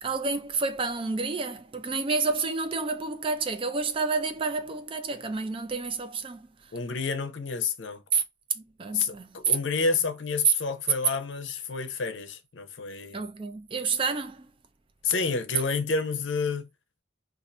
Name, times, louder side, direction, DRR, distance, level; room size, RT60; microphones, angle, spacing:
voice 1, 0.0-6.7 8.1-8.2 8.6-9.6 10.5-10.6 13.1-14.5, right 4 dB, 25° right, 0.3 m, -29 dB
voice 2, 6.7-8.0 8.9-13.2 15.0-16.7, left 4 dB, 65° left, 0.6 m, -29 dB
2.6 x 2.5 x 4.1 m
head